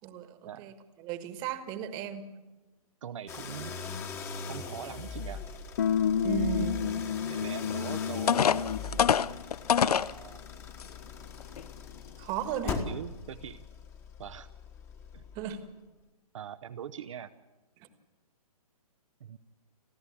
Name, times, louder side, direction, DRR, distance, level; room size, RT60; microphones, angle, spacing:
voice 1, 0.0-2.3 6.2-6.9 12.2-12.9 15.3-15.6 17.8-17.9, right 9 dB, 20° right, 10 dB, 1.5 m, -36 dB
voice 2, 3.0-3.8 4.5-5.5 7.3-8.7 9.8-10.5 12.6-13.6 14.2-14.5 15.1-15.2 16.3-17.3 19.2-19.4, right 9 dB, 55° right, 8 dB, 0.9 m, -42 dB
sound 1, 3.3-15.7, left 5 dB, 15° left, 1.4 m, -41 dB
sound 2, 5.8-8.9, left 8 dB, 40° left, 0.7 m, -30 dB
sound 3, 7.7-7.8 8.3-10.1 10.8-10.9 11.4-11.6, left 8 dB, 80° left, 0.7 m, -25 dB
30.0 x 11.0 x 8.5 m, 1.1 s
hypercardioid pair, 160°, 19 cm